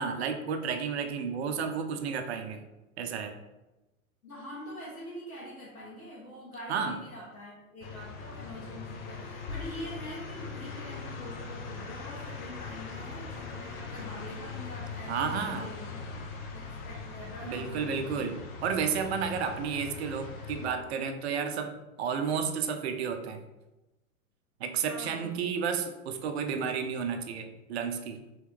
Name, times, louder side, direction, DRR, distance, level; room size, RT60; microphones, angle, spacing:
voice 1, 0.0-2.6 3.0-3.4 6.7-7.0 15.1-15.7 17.4-23.4 24.6-28.2, right 6 dB, 50° right, 7 dB, 0.6 m, -32 dB
voice 2, 4.2-16.0 16.5-18.3 24.8-25.3, left 1 dB, 85° left, -8 dB, 1.4 m, -44 dB
sound 1, 7.8-20.7, left 4 dB, 45° left, 0.7 m, -41 dB
4.4 x 3.2 x 3.3 m, 1.0 s
figure-of-eight pair, 100°, 42 cm